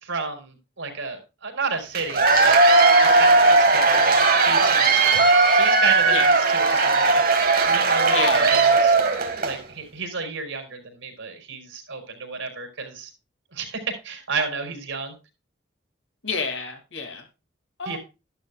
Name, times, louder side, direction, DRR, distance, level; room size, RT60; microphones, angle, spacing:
voice 1, 0.0-2.6 3.0-5.3 5.5-7.2 7.6-8.9 9.4-13.1 13.5-15.1 17.8-18.0, right 4 dB, 90° right, 5 dB, 4.3 m, -32 dB
Cheering / Applause / Crowd, 1.9-9.6, right 3 dB, 50° right, 1.8 m, -17 dB
voice 2, 8.1-8.5 16.2-17.2 17.8-18.0, left 4 dB, 80° left, 4 dB, 2.6 m, -29 dB
12.5 x 11.5 x 2.4 m, 0.27 s
head